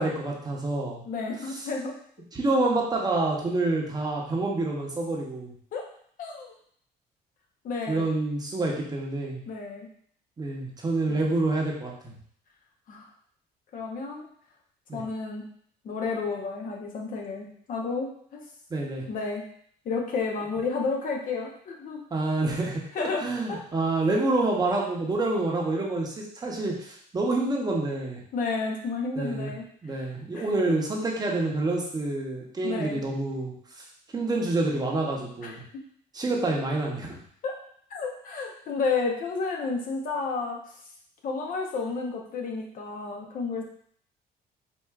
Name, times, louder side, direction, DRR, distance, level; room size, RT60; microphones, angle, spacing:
voice 1, 0.0-1.0 1.5-1.7 2.3-5.5 7.9-9.4 10.4-12.1 14.9-15.0 18.7-19.1 22.1-22.8 23.2-28.2 29.2-29.5 29.8-33.8 34.1-35.6 36.1-37.2, right 2 dB, 25° right, -1 dB, 0.7 m, -27 dB
voice 2, 1.1-2.0 5.7-5.8 6.2-6.5 7.6-8.0 9.5-9.9 11.1-11.2 12.9-13.1 13.7-14.3 14.9-15.4 15.8-18.4 19.1-19.4 19.9-22.0 22.9-23.6 28.3-29.6 30.0-30.1 30.3-30.5 32.6-33.0 35.4-35.5 37.4-37.5 37.9-40.6 41.2-43.6, left 4 dB, 55° left, 1 dB, 0.7 m, -31 dB
4.4 x 2.4 x 2.3 m, 0.62 s
cardioid pair, 110°, 17 cm